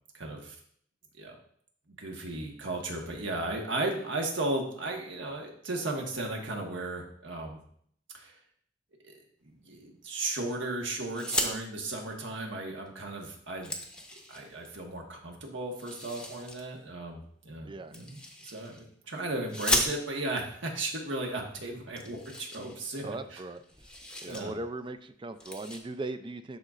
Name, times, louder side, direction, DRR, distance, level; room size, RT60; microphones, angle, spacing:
voice 1, 0.1-0.6 1.2-1.3 2.0-7.6 8.1-8.3 9.0-9.1 9.4-13.7 14.3-23.4 24.2-24.5, right 2 dB, 70° right, 1 dB, 1.4 m, -35 dB
sound 1, 11.1-11.5 12.9-13.0 13.3-14.7 15.8-16.6 17.9-18.8 19.5-20.4 21.2-21.3 21.6-21.7 22.0-23.3 23.5-24.4 24.8-25.0 25.4-25.8, left 1 dB, 5° left, 0.7 m, -35 dB
voice 2, 23.0-23.6 24.2-26.6, right 2 dB, 25° right, 10 dB, 0.4 m, -38 dB
12.0 x 4.0 x 2.5 m, 0.63 s
head